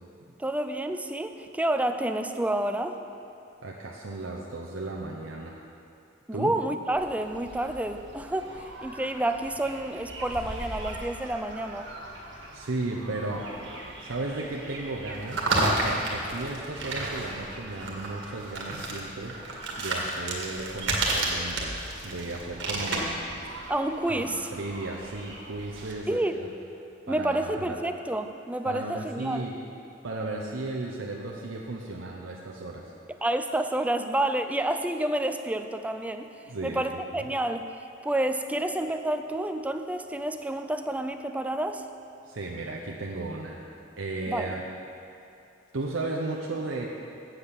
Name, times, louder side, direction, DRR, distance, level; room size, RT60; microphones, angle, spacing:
voice 1, 0.4-3.0 6.3-11.9 23.7-24.5 26.1-26.4 27.1-29.4 33.1-36.3 36.6-37.7 38.0-41.9 44.3-44.6, right 1 dB, 5° right, 7 dB, 0.4 m, -29 dB
voice 2, 3.6-5.6 6.3-6.5 12.5-13.5 14.0-19.4 19.8-23.2 23.6-23.7 24.1-26.5 27.1-27.8 28.6-29.5 30.0-32.9 36.5-36.9 37.1-37.3 42.3-43.6 44.0-44.6 45.7-46.9, right 2 dB, 85° right, -1 dB, 0.8 m, -35 dB
sound 1, 6.9-25.9, right 2 dB, 70° right, 1.8 m, -34 dB
sound 2, 10.1-11.1 11.7-12.1 12.5-12.7 13.0-14.0 15.9-16.0 16.7-17.5 19.0-19.1 19.5-19.6 19.8-20.9 22.7-22.8 23.3-23.7, equal, 25° left, 2.9 m, -44 dB
8.2 x 7.8 x 7.0 m, 2.6 s
head